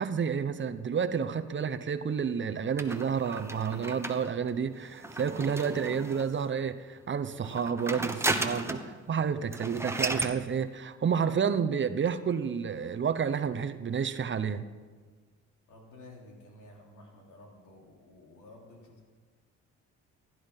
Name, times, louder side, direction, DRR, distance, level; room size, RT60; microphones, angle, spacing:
voice 1, 0.0-14.7, right 7 dB, 40° right, 10 dB, 0.8 m, -30 dB
sound 1, 2.8-6.4 7.4-8.9 9.2-9.3 9.5-10.4, right 2 dB, 10° right, 1.1 m, -34 dB
voice 2, 15.7-19.0, left 2 dB, 85° left, 0 dB, 3.4 m, -52 dB
16.0 x 11.0 x 5.6 m, 1.4 s
cardioid pair, 90°, 30 cm